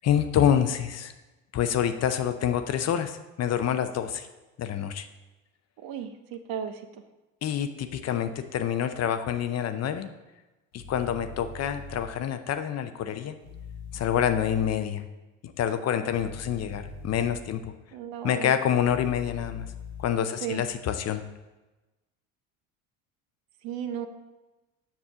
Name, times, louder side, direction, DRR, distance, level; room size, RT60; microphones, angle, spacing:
voice 1, 0.0-1.1 1.5-4.3 4.6-5.1 7.4-10.1 10.7-13.4 13.9-15.1 15.4-17.7 18.2-19.7 20.0-21.2, left 9 dB, 40° left, 9 dB, 0.6 m, -27 dB
voice 2, 5.8-6.8 17.9-18.5 20.4-20.6 23.6-24.1, right 8 dB, 60° right, 8 dB, 0.8 m, -34 dB
sound 1, 10.7-12.1 13.4-14.7 16.1-17.4 18.7-20.1, left 4 dB, 75° left, 1.1 m, -41 dB
7.3 x 6.1 x 3.7 m, 1.1 s
hypercardioid pair, 65°, 41 cm